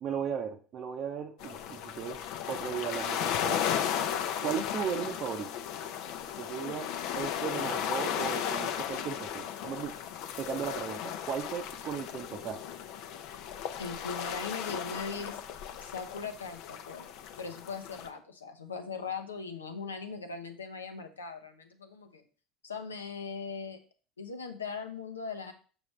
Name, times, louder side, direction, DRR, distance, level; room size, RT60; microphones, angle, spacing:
voice 1, 0.0-2.2 2.5-3.6 4.4-5.5 6.4-9.9 10.4-12.6, right 7 dB, 50° right, 3 dB, 0.7 m, -36 dB
sound 1, 1.4-18.1, left 9 dB, 60° left, 0.7 m, -35 dB
voice 2, 13.8-15.4 15.8-17.1 17.4-22.2 22.6-23.8 24.2-25.5, left 5 dB, 90° left, 7 dB, 0.8 m, -39 dB
6.4 x 6.2 x 3.2 m, 0.39 s
hypercardioid pair, 70°, 0 cm